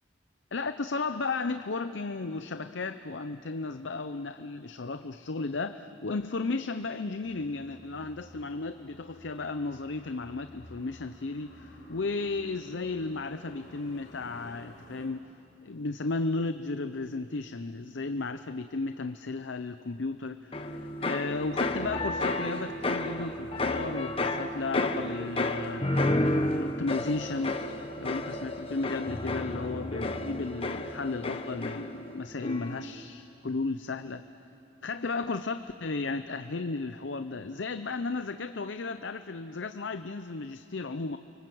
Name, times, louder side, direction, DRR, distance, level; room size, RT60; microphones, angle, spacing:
voice 1, 0.5-15.3 15.6-25.9 26.5-27.6 28.0-34.2 34.8-41.2, left 3 dB, 75° left, 10 dB, 0.7 m, -34 dB
sound 1, 7.2-15.1, left 1 dB, 45° left, 4.7 m, -53 dB
sound 2, 20.5-32.1 32.4-32.9, left 2 dB, 30° left, 1.1 m, -31 dB
29.5 x 24.5 x 7.9 m, 2.8 s
head